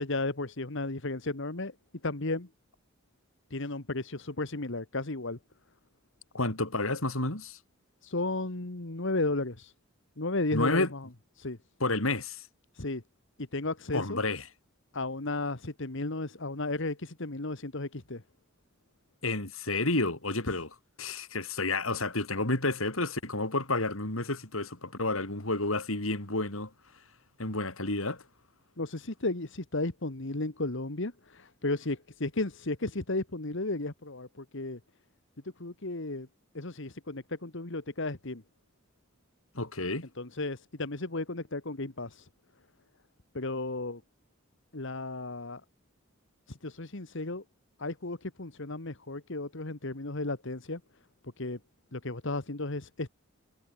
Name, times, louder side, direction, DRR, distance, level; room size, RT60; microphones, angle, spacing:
voice 1, 0.0-1.7 2.0-2.5 3.5-5.4 8.0-9.7 10.2-11.1 11.4-11.6 12.7-13.0 13.4-14.2 14.9-18.2 28.8-34.8 35.6-36.3 36.5-38.4 40.2-42.3 43.3-44.0 44.7-45.6 46.5-47.4 47.8-50.8 51.4-51.6 51.9-53.1, left 2 dB, 65° left, 1.8 m, -34 dB
voice 2, 6.3-7.6 10.5-10.9 11.8-12.5 13.9-14.4 19.2-20.7 21.0-26.7 27.4-28.2 39.5-40.1, left 2 dB, 85° left, 5.6 m, -30 dB
head